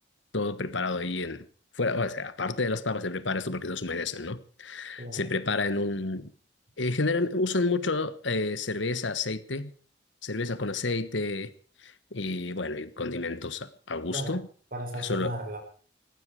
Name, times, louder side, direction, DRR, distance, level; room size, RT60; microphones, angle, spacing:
voice 1, 0.3-1.4 1.7-6.3 6.8-9.7 10.2-11.5 11.8-14.4 15.0-15.3, left 3 dB, 80° left, 1.4 m, -30 dB
voice 2, 5.0-5.3 14.1-14.4 14.7-15.6, right 1 dB, 45° right, 5.9 m, -35 dB
19.0 x 15.5 x 4.9 m
head